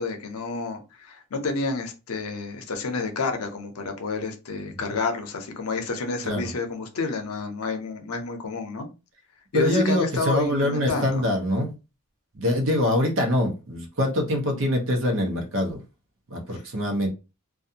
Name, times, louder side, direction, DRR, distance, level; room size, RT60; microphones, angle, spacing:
voice 1, 0.0-8.9 9.5-11.2, left 3 dB, 80° left, 0.6 m, -30 dB
voice 2, 9.5-11.7 12.3-15.8 16.3-17.1, left 1 dB, 60° right, 0.7 m, -24 dB
2.5 x 2.3 x 2.7 m
head